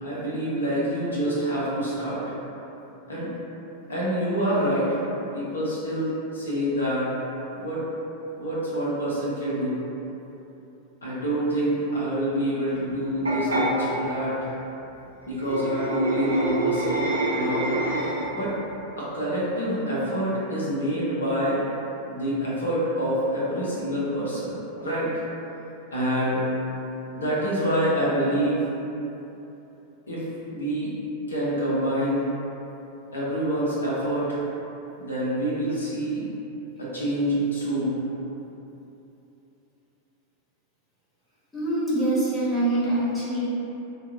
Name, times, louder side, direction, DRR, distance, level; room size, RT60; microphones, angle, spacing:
voice 1, 0.0-2.4 3.1-3.3 3.9-5.0 5.3-7.1 7.5-7.9 8.4-9.8 11.0-14.5 15.2-17.8 18.3-18.5 19.0-21.6 22.1-24.5 24.8-25.2 25.9-26.4 27.1-28.7 30.1-30.9 31.3-32.3 33.1-34.4 35.0-36.3 36.8-38.0, right 1 dB, 70° left, -8 dB, 0.9 m, -26 dB
sound 1, 13.3-13.7 15.4-18.4, right 1 dB, 75° right, 0.7 m, -26 dB
voice 2, 41.5-43.4, right 1 dB, 5° right, -10 dB, 1.2 m, -24 dB
3.0 x 2.4 x 3.5 m, 3.0 s
figure-of-eight pair, 90°, 0 cm